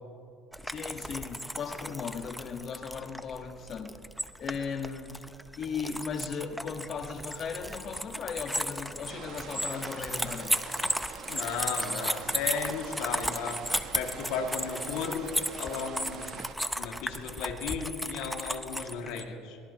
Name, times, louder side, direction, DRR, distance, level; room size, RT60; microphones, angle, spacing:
sound 1, 0.5-19.2, equal, ahead, 0.6 m, -35 dB
voice 1, 0.6-4.0 4.4-5.2 5.6-10.6, left 6 dB, 40° left, 1.4 m, -37 dB
sound 2, 9.1-16.5, right 8 dB, 55° right, 1.0 m, -45 dB
voice 2, 11.3-13.6 13.9-15.3 15.6-16.4 16.8-19.6, left 6 dB, 80° left, 2.3 m, -35 dB
23.0 x 18.5 x 3.0 m
cardioid pair, 125°, 0 cm